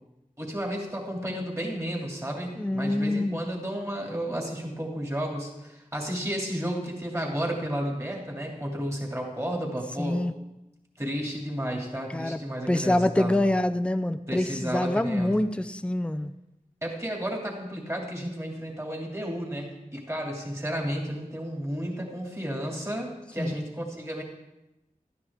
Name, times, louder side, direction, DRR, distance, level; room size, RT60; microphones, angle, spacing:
voice 1, 0.4-10.2 11.0-13.3 14.3-15.3 16.8-24.2, equal, 20° right, -2 dB, 2.6 m, -32 dB
voice 2, 2.6-3.4 10.0-10.3 12.1-12.4 12.7-16.3 23.4-23.6, left 1 dB, 10° left, 11 dB, 0.4 m, -26 dB
12.5 x 9.8 x 3.6 m, 0.95 s
wide cardioid pair, 40°, 14 cm